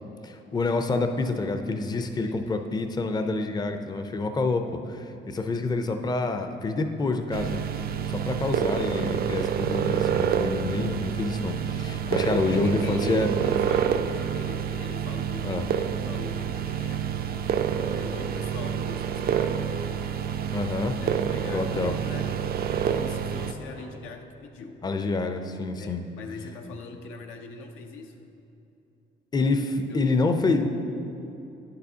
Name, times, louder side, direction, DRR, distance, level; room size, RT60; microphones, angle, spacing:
voice 1, 0.2-7.6 8.1-13.3 15.4-15.7 20.5-20.9 21.4-21.9 24.8-26.0 29.3-30.7, left 3 dB, 20° left, 7 dB, 0.4 m, -27 dB
voice 2, 1.9-2.4 12.0-17.1 17.9-20.3 20.7-22.3 22.9-24.8 25.8-28.3 29.4-29.5 29.8-30.2, left 4 dB, 85° left, 4 dB, 0.6 m, -41 dB
sound 1, 7.3-23.5, right 8 dB, 50° right, 0.4 m, -28 dB
sound 2, 18.8-23.9, right 3 dB, 80° right, 1.1 m, -49 dB
9.7 x 6.8 x 2.7 m, 2.9 s
cardioid pair, 90°, 20 cm